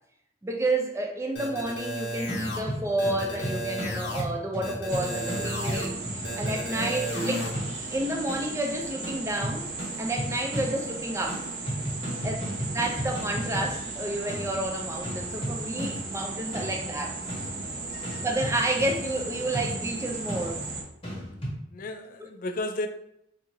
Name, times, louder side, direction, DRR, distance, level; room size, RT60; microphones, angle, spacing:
voice 1, 0.4-7.5 7.9-9.7 10.0-11.4 12.2-17.2 18.2-20.6, right 2 dB, 15° right, 0.4 m, -30 dB
sound 1, 1.4-2.6 3.0-4.2 4.6-5.9 6.2-7.5, equal, 70° left, 1.2 m, -33 dB
sound 2, 2.3-8.7 9.0-11.0 11.3-21.6, equal, 30° left, 1.3 m, -36 dB
sound 3, 4.9-20.8, right 3 dB, 60° right, 0.7 m, -36 dB
voice 2, 17.9-18.3 21.7-22.9, left 2 dB, 50° left, 0.3 m, -34 dB
3.0 x 2.6 x 3.6 m
head